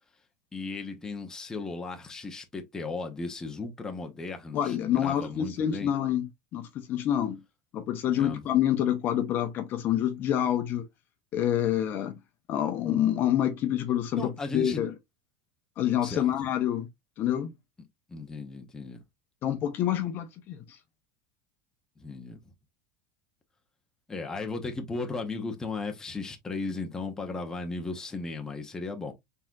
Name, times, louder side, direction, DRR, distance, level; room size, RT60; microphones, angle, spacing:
voice 1, 0.5-5.9 8.1-8.4 14.1-14.8 16.0-16.3 18.1-19.0 22.0-22.4 24.1-29.1, left 3 dB, 10° left, 0.9 m, -36 dB
voice 2, 4.5-7.4 7.7-10.8 11.3-12.2 12.5-14.9 15.8-16.9 17.2-17.5 19.4-20.8, left 10 dB, 40° left, 0.7 m, -27 dB
4.1 x 3.7 x 2.3 m
supercardioid pair, 135°, 5 cm